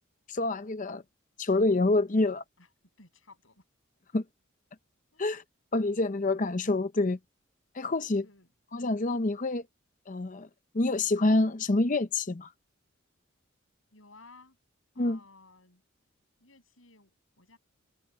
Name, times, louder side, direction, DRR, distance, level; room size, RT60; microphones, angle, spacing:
voice 1, 0.3-1.0 1.4-2.4 4.1-4.2 5.2-5.4 5.7-7.2 7.7-8.2 8.7-9.6 10.1-10.5 10.7-12.5 15.0-15.2, left 2 dB, 40° left, 0.7 m, -27 dB
voice 2, 3.0-3.6 5.1-5.3 8.2-8.5 13.9-14.6 14.9-15.8 16.4-17.6, left 3 dB, 80° left, 7.4 m, -56 dB
head